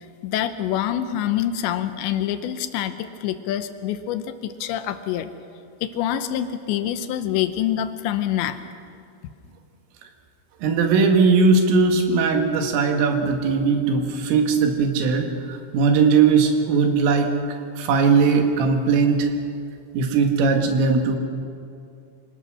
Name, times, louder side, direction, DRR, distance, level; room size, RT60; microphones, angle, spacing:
voice 1, 0.2-5.3 5.8-8.6, left 11 dB, 80° left, 10 dB, 2.8 m, -26 dB
voice 2, 10.6-17.4 17.8-19.3 19.9-21.2, right 4 dB, 85° right, 4 dB, 4.4 m, -19 dB
26.0 x 19.0 x 6.3 m, 2.5 s
omnidirectional pair, 5.6 m